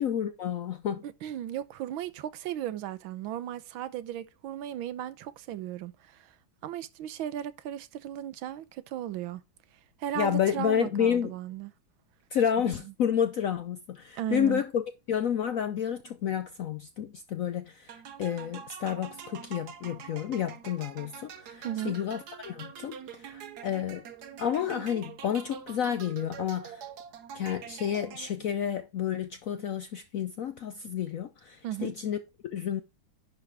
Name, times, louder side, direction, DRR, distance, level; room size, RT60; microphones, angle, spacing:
voice 1, 0.0-1.0 10.2-11.3 12.3-14.8 15.1-24.0 24.4-26.8 27.3-32.2 32.4-32.8, left 9 dB, 75° left, 0.8 m, -30 dB
voice 2, 1.0-6.3 6.6-9.4 10.0-11.7 12.5-12.9 14.2-14.6 21.6-22.0 31.6-31.9, right 11 dB, 90° right, 1.5 m, -36 dB
sound 1, 17.9-28.6, right 8 dB, 60° right, 1.4 m, -45 dB
10.5 x 4.0 x 4.7 m
omnidirectional pair, 2.1 m